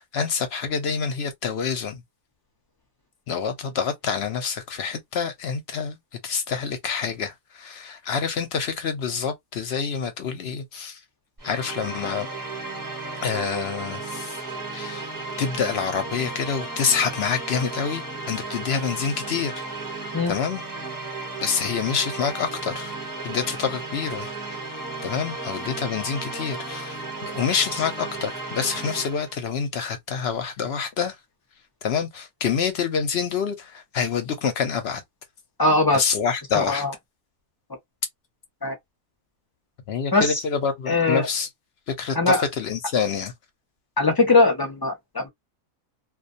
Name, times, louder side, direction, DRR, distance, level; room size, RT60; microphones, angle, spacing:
voice 1, 0.0-2.0 3.3-11.0 11.4-12.3 13.2-14.4 14.7-15.1 15.4-19.6 20.3-20.6 21.4-23.0 23.2-24.6 25.0-31.2 31.8-35.0 35.9-36.8 39.9-41.5 41.9-43.3, left 6 dB, 60° left, 0.7 m, -27 dB
sound 1, 11.4-29.3, right 3 dB, 20° right, 0.5 m, -34 dB
voice 2, 35.6-36.0 36.6-36.9 38.6-38.7 40.1-40.3 40.9-41.3 42.1-42.4 44.0-45.3, left 3 dB, 30° left, 0.4 m, -20 dB
2.3 x 2.2 x 2.5 m
omnidirectional pair, 1.5 m